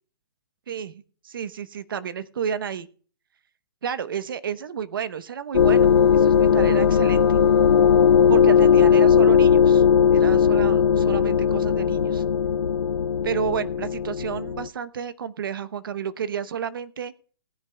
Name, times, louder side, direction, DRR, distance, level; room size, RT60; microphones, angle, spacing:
voice 1, 1.2-2.9 3.8-7.4 8.3-9.8 10.1-12.2 13.2-17.1, right 7 dB, 60° right, 14 dB, 0.8 m, -31 dB
sound 1, 5.5-14.7, left 7 dB, 85° left, 0.7 m, -18 dB
19.0 x 9.8 x 2.2 m, 0.41 s
hypercardioid pair, 175°, 13 cm